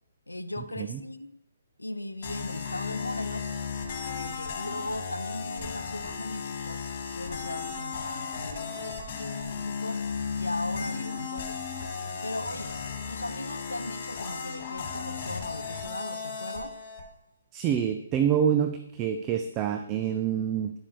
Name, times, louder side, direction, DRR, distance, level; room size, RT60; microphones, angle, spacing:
voice 1, 0.3-1.4 1.8-3.5 4.1-6.8 7.1-10.1 10.4-11.6 12.2-12.8 13.1-16.8, left 1 dB, 80° left, 12 dB, 0.8 m, -38 dB
sound 1, 2.2-17.0, left 5 dB, 35° left, 2.4 m, -35 dB
voice 2, 17.5-20.7, right 9 dB, 25° right, 7 dB, 0.7 m, -27 dB
11.0 x 8.6 x 5.0 m, 0.78 s
figure-of-eight pair, 130°, 0 cm